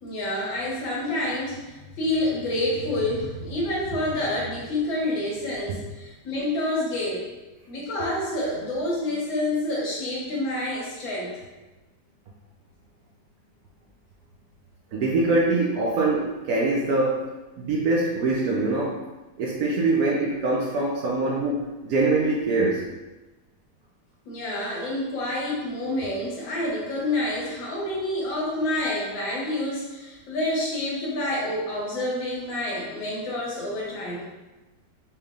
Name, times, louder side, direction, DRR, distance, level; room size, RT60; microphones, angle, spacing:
voice 1, 0.0-7.3 7.7-11.3 24.3-34.3, left 1 dB, 85° left, -4 dB, 1.8 m, -28 dB
voice 2, 14.9-17.3 17.6-19.0 19.4-22.9, right 2 dB, 70° right, -3 dB, 0.9 m, -23 dB
4.4 x 3.3 x 2.4 m, 1.1 s
omnidirectional pair, 2.0 m